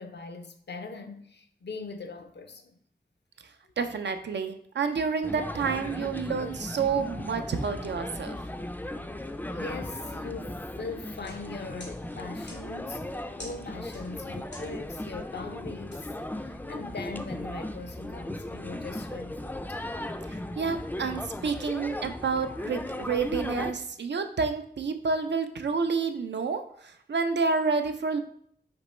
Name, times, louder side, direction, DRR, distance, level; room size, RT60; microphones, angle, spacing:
voice 1, 0.0-2.8 9.5-16.1 16.4-19.8, left 3 dB, 75° left, 0.5 m, -41 dB
voice 2, 3.8-8.4 20.3-28.2, right 5 dB, 80° right, 0.4 m, -29 dB
sound 1, 5.2-23.7, left 1 dB, 10° left, 0.3 m, -37 dB
sound 2, 11.2-16.9, left 1 dB, 90° left, 1.8 m, -52 dB
5.1 x 3.0 x 3.1 m
wide cardioid pair, 60°, 18 cm